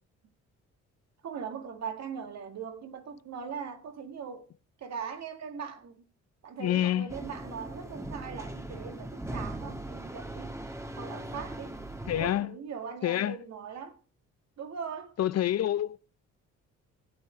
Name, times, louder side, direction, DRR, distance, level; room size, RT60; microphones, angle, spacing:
voice 1, 1.2-4.5 4.8-6.0 6.4-10.6 11.0-11.8 12.2-14.0 14.6-15.2, right 6 dB, 60° right, 2.0 m, -40 dB
voice 2, 6.6-7.1 12.1-12.5 13.0-13.4 15.2-16.0, left 12 dB, 55° left, 0.6 m, -27 dB
sound 1, 7.1-12.3, right 1 dB, 10° right, 1.5 m, -39 dB
16.0 x 9.3 x 5.1 m
cardioid pair, 90°, 30 cm